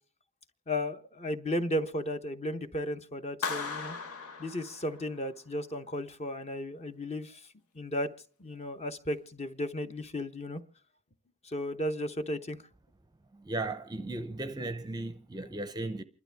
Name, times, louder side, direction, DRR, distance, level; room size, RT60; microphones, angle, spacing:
voice 1, 0.7-4.0 4.4-7.5 7.7-8.1 8.4-10.6 11.4-12.6, left 1 dB, 30° left, 0.8 m, -34 dB
Clapping, 3.4-5.3, left 5 dB, 80° left, 1.4 m, -37 dB
voice 2, 13.3-16.0, right 2 dB, 20° right, 0.6 m, -36 dB
28.5 x 12.0 x 3.4 m
head